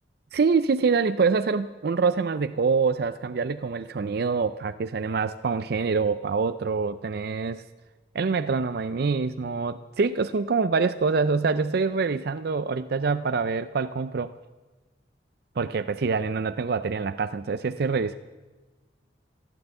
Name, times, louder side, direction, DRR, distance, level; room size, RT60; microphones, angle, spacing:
voice 1, 0.3-7.6 8.1-14.3 15.6-18.2, right 4 dB, 55° right, 11 dB, 0.4 m, -25 dB
15.0 x 12.0 x 7.9 m, 1.2 s
head